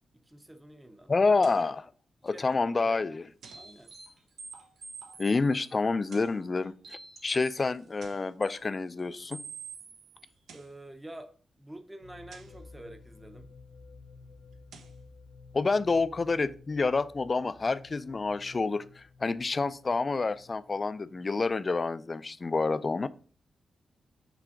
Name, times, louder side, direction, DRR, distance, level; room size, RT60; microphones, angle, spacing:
voice 1, 0.2-1.1 2.2-2.6 2.8-3.0 3.5-3.9 10.5-11.3 11.6-13.5, right 1 dB, 10° right, 7 dB, 0.7 m, -47 dB
voice 2, 1.1-1.9 2.2-3.2 5.2-9.4 15.5-23.1, left 3 dB, 30° left, 15 dB, 0.4 m, -28 dB
sound 1, 1.4-1.8 3.4-3.8 5.9-6.5 8.0-8.4 10.3-10.8 12.3-12.6 14.5-15.0, right 5 dB, 80° right, 0.8 m, -53 dB
sound 2, 3.4-7.8 8.4-8.6 9.0-9.1 9.3-10.3 10.6-10.7, right 4 dB, 65° right, 2.0 m, -47 dB
sound 3, 12.0-21.7, left 4 dB, 60° left, 0.9 m, -53 dB
6.1 x 3.3 x 5.8 m, 0.39 s
wide cardioid pair, 135°, 0 cm